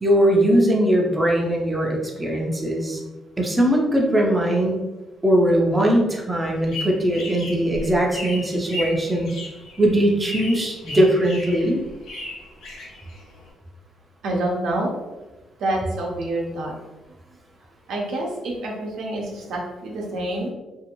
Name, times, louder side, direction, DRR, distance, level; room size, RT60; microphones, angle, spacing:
voice 1, 0.0-3.0 3.4-4.8 5.2-9.3 9.8-11.8, right 1 dB, 15° right, -1 dB, 0.5 m, -20 dB
sound 1, 6.5-13.5, left 1 dB, 80° left, 0.8 m, -36 dB
voice 2, 14.2-14.9 15.6-16.7 17.9-20.5, right 1 dB, 75° right, -1 dB, 0.7 m, -27 dB
2.6 x 2.4 x 2.9 m, 1.1 s
cardioid pair, 90°, 0 cm